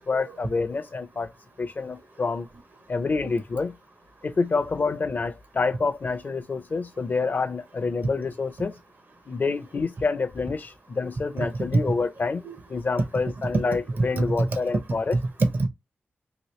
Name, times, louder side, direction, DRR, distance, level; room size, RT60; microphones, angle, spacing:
voice 1, 0.1-1.3 1.6-2.5 2.9-3.7 4.2-8.7 9.3-12.4 12.7-15.2, left 4 dB, 45° left, 0.5 m, -27 dB
voice 2, 13.6-14.5 15.1-15.7, right 2 dB, 45° right, 0.6 m, -24 dB
2.9 x 2.8 x 3.1 m
wide cardioid pair, 125°, 4 cm